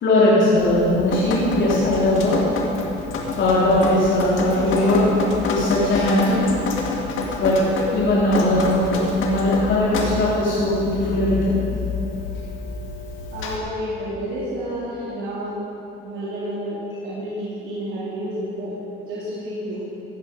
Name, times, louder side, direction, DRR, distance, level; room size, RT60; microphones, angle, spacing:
voice 1, 0.0-2.4 3.4-5.2 5.5-6.4 7.4-11.6, left 1 dB, 70° left, -8 dB, 3.5 m, -19 dB
Drip, 0.6-13.6, left 4 dB, 85° left, 2.0 m, -28 dB
voice 2, 13.3-15.5 16.0-18.8 19.1-19.8, equal, 90° right, -9 dB, 3.3 m, -30 dB
16.5 x 12.5 x 5.3 m, 2.8 s
cardioid pair, 90°, 20 cm